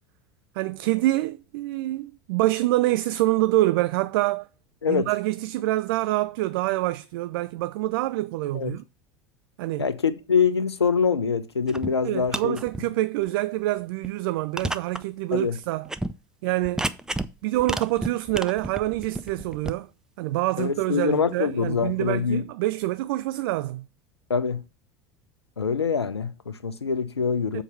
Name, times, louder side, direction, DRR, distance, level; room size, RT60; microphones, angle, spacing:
voice 1, 0.6-4.5 4.9-8.8 9.6-9.9 12.0-15.9 16.4-16.8 17.4-19.9 20.2-23.9 27.5-27.6, right 17 dB, 60° right, 0.4 m, -26 dB
voice 2, 9.8-12.6 15.3-15.6 20.6-22.4 24.3-24.6 25.6-27.6, left 6 dB, 90° left, 0.6 m, -24 dB
sound 1, 11.7-11.9 12.2-12.8 13.3-13.4 14.0-14.1 14.6-15.0 15.3-15.4 15.9-16.1 16.6-17.3 17.6-19.7, right 1 dB, 5° right, 0.5 m, -31 dB
7.2 x 4.6 x 5.5 m
figure-of-eight pair, 75°, 13 cm